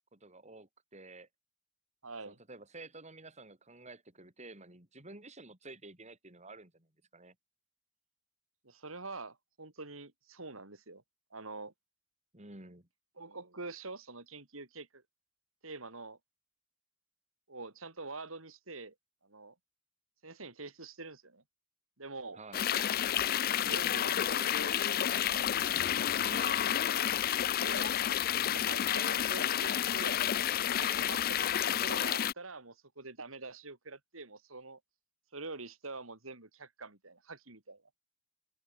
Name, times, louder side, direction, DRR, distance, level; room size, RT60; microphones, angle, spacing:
voice 1, 0.1-1.3 2.2-7.3 12.3-12.9 22.3-22.7 26.2-26.6, right 2 dB, 35° right, 5.1 m, -51 dB
voice 2, 2.0-2.4 8.6-11.0 11.3-11.7 13.2-15.0 15.6-16.2 17.5-18.9 19.2-19.5 20.2-21.4 22.0-22.4 23.5-24.8 27.5-27.9 28.3-30.2 30.7-34.8 35.3-37.8, right 3 dB, 90° right, 4.2 m, -45 dB
sound 1, 22.5-32.3, left 10 dB, 45° left, 0.4 m, -30 dB
open air
head